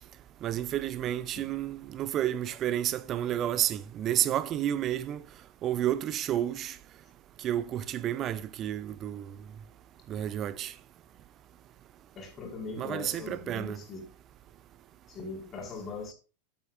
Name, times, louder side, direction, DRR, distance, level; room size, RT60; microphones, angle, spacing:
voice 1, 0.4-5.2 5.6-6.8 7.4-9.3 10.1-10.7 12.8-13.8, right 11 dB, 30° right, 0.6 m, -31 dB
voice 2, 12.1-14.1 15.1-16.1, left 4 dB, 25° left, 4.9 m, -40 dB
13.5 x 8.9 x 2.6 m
figure-of-eight pair, 90°, 0 cm